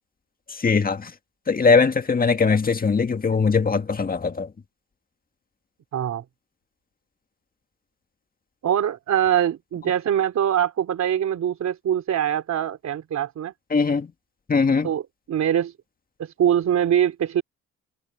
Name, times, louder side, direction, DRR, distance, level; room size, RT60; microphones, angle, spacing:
voice 1, 0.6-1.1 1.5-4.5 13.7-14.1 14.5-14.9, left 4 dB, 30° left, 1.8 m, -20 dB
voice 2, 5.9-6.2 8.6-13.5 14.8-15.7 16.2-17.4, right 10 dB, 60° right, 3.4 m, -23 dB
cardioid pair, 90°, 30 cm